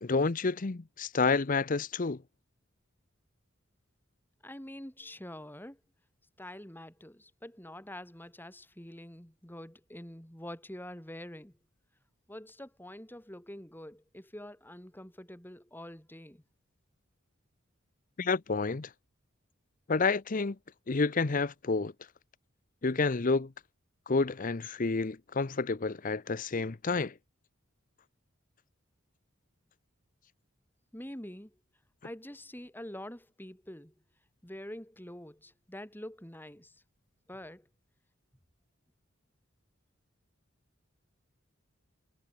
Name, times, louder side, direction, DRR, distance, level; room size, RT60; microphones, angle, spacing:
voice 1, 0.0-2.2 18.2-18.9 19.9-20.6 20.9-21.9 22.8-23.5 24.1-27.1, left 4 dB, 40° left, 0.7 m, -29 dB
voice 2, 4.4-5.8 6.4-11.5 12.3-16.4 30.9-31.5 32.0-33.9 34.4-36.8 37.3-37.7, left 1 dB, 10° left, 2.7 m, -46 dB
head